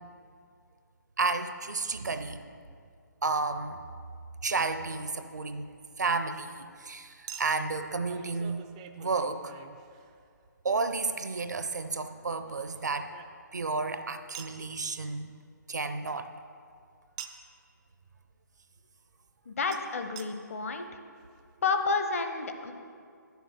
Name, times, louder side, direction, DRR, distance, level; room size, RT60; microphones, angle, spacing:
voice 1, 1.2-2.4 3.2-3.8 4.4-5.7 6.0-8.7 9.0-9.5 10.6-13.1 13.5-15.3 15.7-16.3, right 3 dB, 65° right, 9 dB, 0.6 m, -31 dB
Chink clink, 4.5-4.6 7.3-10.5 12.0-13.7 14.3-14.6 17.2-17.6 19.7-19.8 20.2-20.3 20.9-21.0 21.2-21.3, right 9 dB, 20° right, 0.4 m, -47 dB
voice 2, 19.5-20.9 21.6-22.7, left 4 dB, 45° left, 7 dB, 0.8 m, -30 dB
9.2 x 7.0 x 6.4 m, 2.2 s
figure-of-eight pair, 140°, 10 cm